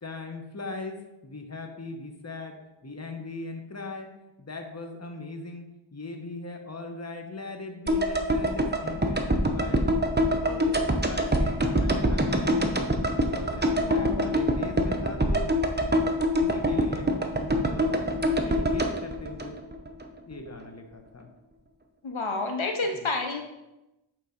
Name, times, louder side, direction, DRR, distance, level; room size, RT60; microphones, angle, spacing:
voice 1, 0.0-4.1 4.4-5.6 5.9-9.9 10.4-12.6 13.2-15.5 16.4-17.1 17.4-19.6 20.3-21.3 22.9-23.1, left 2 dB, 30° left, 4 dB, 1.0 m, -40 dB
sound 1, 7.9-20.1 20.3-20.4, equal, 20° right, 0.8 m, -25 dB
voice 2, 13.8-14.3 22.0-23.4, left 3 dB, 70° left, 4 dB, 0.8 m, -30 dB
8.2 x 3.6 x 5.1 m, 0.97 s
wide cardioid pair, 40°, 49 cm